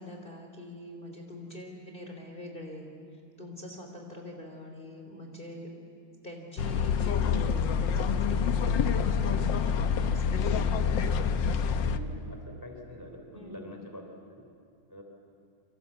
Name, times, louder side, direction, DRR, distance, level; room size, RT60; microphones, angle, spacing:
voice 1, 0.0-2.9 3.4-5.8 6.2-11.0 13.3-13.7, left 1 dB, 25° left, 2 dB, 3.3 m, -44 dB
sound 1, 6.6-12.0, left 6 dB, 65° left, 1.5 m, -27 dB
voice 2, 11.8-14.0 14.3-14.4 14.9-15.0, equal, 10° right, 3 dB, 3.1 m, -45 dB
29.0 x 24.5 x 8.4 m, 2.3 s
omnidirectional pair, 2.3 m